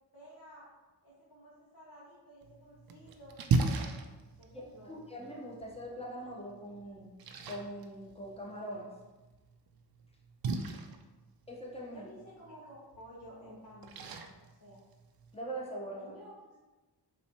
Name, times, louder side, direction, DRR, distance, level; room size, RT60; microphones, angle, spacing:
voice 1, 0.1-0.6 1.0-3.3 3.6-5.0 11.9-14.8 15.9-16.6, equal, 55° left, -8 dB, 1.2 m, -53 dB
Splash splatter, 2.4-15.4, right 4 dB, 55° right, 0.5 m, -39 dB
voice 2, 4.9-7.1 7.4-8.9 11.5-12.1 15.3-16.1, right 1 dB, 15° left, -2 dB, 0.9 m, -42 dB
4.0 x 2.7 x 2.8 m, 1.2 s
cardioid pair, 55°, 44 cm